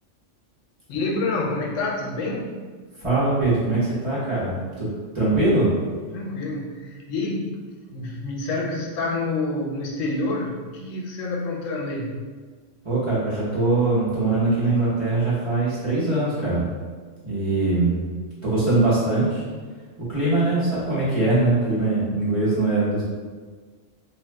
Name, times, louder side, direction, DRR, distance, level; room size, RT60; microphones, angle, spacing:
voice 1, 0.9-2.6 6.1-7.6 7.9-12.2, left 2 dB, 80° left, -2 dB, 0.9 m, -28 dB
voice 2, 3.0-4.9 5.1-5.7 12.8-16.7 17.2-18.0 18.4-19.4 20.1-23.0, right 2 dB, 30° right, -10 dB, 0.9 m, -22 dB
2.6 x 2.3 x 3.2 m, 1.5 s
omnidirectional pair, 1.3 m